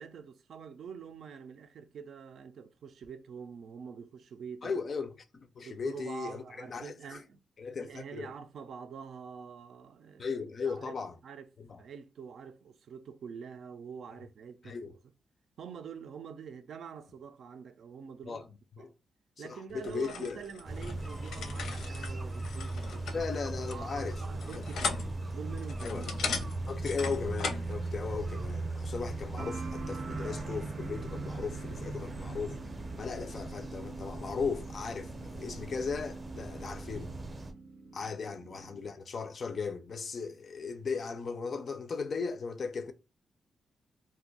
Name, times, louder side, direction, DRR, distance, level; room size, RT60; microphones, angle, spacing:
voice 1, 0.0-4.7 5.6-7.4 7.8-10.4 10.6-11.0 11.2-11.5 11.8-15.0 15.6-18.5 18.8-18.9 19.4-23.2 23.7-25.0 25.3-26.1, right 6 dB, 65° right, 0.4 m, -46 dB
voice 2, 4.6-7.2 7.6-8.3 10.2-11.2 11.6-11.8 14.6-14.9 18.3-18.4 18.8-18.9 19.4-20.4 23.1-24.2 25.8-26.0 26.7-32.6 33.0-37.1 37.9-42.9, left 5 dB, 45° left, 0.4 m, -37 dB
sound 1, 19.8-27.7, left 5 dB, 85° left, 0.7 m, -39 dB
sound 2, 20.6-37.5, right 2 dB, 20° right, 0.6 m, -39 dB
sound 3, 29.4-38.9, right 4 dB, 90° right, 0.7 m, -46 dB
2.5 x 2.2 x 3.9 m
wide cardioid pair, 140°, 0 cm